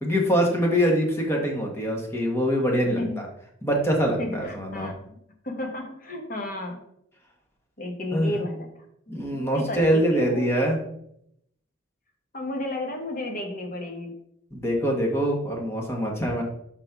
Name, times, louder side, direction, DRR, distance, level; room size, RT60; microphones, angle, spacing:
voice 1, 0.0-3.3 3.6-4.9 8.1-8.4 9.1-10.8 14.5-16.4, equal, 15° left, -1 dB, 1.4 m, -24 dB
voice 2, 4.2-5.1 5.4-6.8 7.8-8.7 9.1-10.5 12.3-14.1, left 1 dB, 45° left, 2 dB, 1.3 m, -33 dB
5.4 x 4.1 x 5.8 m, 0.73 s
head